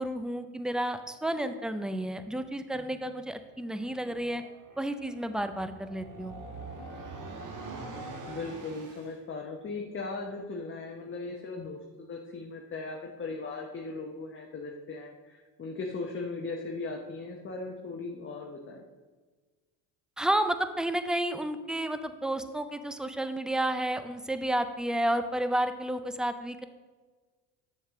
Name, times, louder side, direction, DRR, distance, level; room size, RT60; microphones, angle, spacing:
voice 1, 0.0-4.4 4.8-6.3 20.2-26.6, right 1 dB, ahead, 10 dB, 0.4 m, -31 dB
sound 1, 3.7-9.2, right 3 dB, 45° right, 1.4 m, -44 dB
voice 2, 8.3-18.8, left 3 dB, 30° left, 1 dB, 0.9 m, -38 dB
7.0 x 6.7 x 3.6 m, 1.4 s
supercardioid pair, 75°, 43 cm